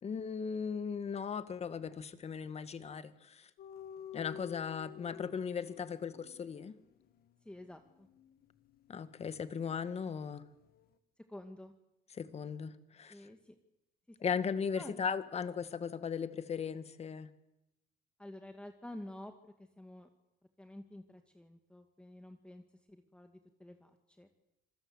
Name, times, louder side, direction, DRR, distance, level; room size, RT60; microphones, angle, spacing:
voice 1, 0.0-3.5 4.1-6.7 8.9-10.4 12.1-13.2 14.2-17.3, left 6 dB, 40° left, 12 dB, 1.9 m, -37 dB
sound 1, 3.6-10.3 10.6-10.9, left 9 dB, 65° left, 1.9 m, -52 dB
voice 2, 7.4-8.1 11.3-11.7 13.1-13.6 14.1-14.2 14.8-15.1 18.2-20.1 20.6-24.3, left 1 dB, 5° left, 6 dB, 2.0 m, -50 dB
26.5 x 20.5 x 8.1 m, 0.87 s
cardioid pair, 110°, 17 cm